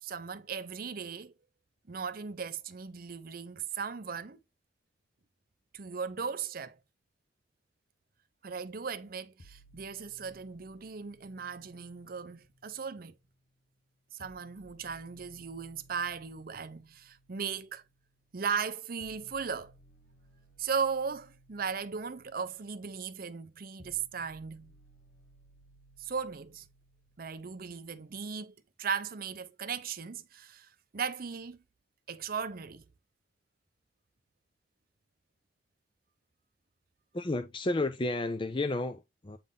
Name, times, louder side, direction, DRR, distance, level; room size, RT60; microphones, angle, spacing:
voice 1, 0.0-1.3 1.9-4.4 5.7-6.8 8.4-13.1 14.2-17.8 18.3-19.7 20.6-24.7 26.0-26.7 27.2-31.6 32.1-32.8, right 6 dB, 55° right, 0.7 m, -37 dB
sound 1, 9.4-13.4 14.2-28.2, right 1 dB, 70° left, 1.1 m, -61 dB
voice 2, 37.1-39.4, left 2 dB, 30° left, 0.6 m, -32 dB
8.6 x 3.7 x 3.8 m
head